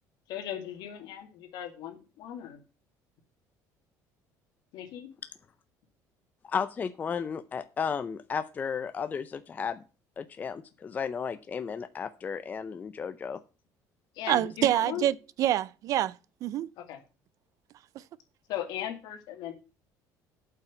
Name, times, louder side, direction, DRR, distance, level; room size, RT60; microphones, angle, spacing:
voice 1, 0.3-2.6 4.7-5.1 14.2-15.0 16.8-17.0 18.5-19.5, left 11 dB, 70° left, 2.2 m, -38 dB
voice 2, 6.4-9.8 10.2-13.4, left 6 dB, 25° left, 0.5 m, -34 dB
voice 3, 14.3-16.1 16.4-16.7, right 12 dB, 50° right, 0.5 m, -26 dB
8.3 x 5.8 x 7.9 m
cardioid pair, 150°, 7 cm